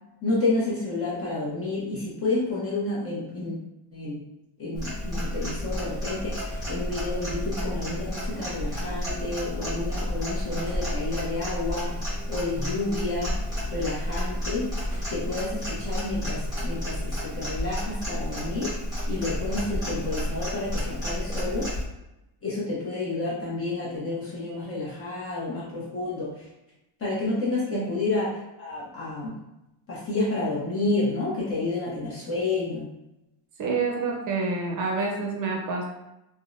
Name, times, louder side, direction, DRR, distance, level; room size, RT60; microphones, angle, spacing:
voice 1, 0.2-3.6 3.9-4.2 4.6-11.9 12.3-13.3 13.7-14.7 15.1-18.7 19.1-21.7 22.4-26.3 27.0-28.3 28.6-29.4 29.9-32.9, left 2 dB, 30° left, -6 dB, 0.8 m, -30 dB
Clock, 4.8-21.8, equal, 10° right, 1.1 m, -31 dB
voice 2, 33.6-35.8, right 4 dB, 40° right, -1 dB, 0.6 m, -28 dB
3.4 x 2.1 x 2.5 m, 0.91 s
cardioid pair, 175°, 47 cm